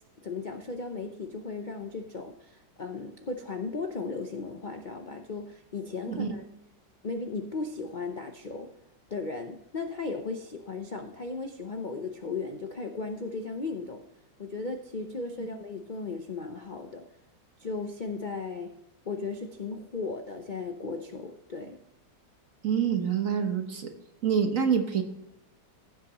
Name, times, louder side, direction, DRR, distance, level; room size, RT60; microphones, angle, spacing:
voice 1, 0.2-6.5 7.0-8.7 9.1-14.0 14.4-17.0 17.6-18.7 19.1-21.8, left 4 dB, 85° left, 5 dB, 0.4 m, -36 dB
voice 2, 22.6-23.9 24.2-25.0, right 7 dB, 50° right, 6 dB, 1.3 m, -26 dB
16.0 x 7.4 x 3.0 m, 0.89 s
omnidirectional pair, 2.1 m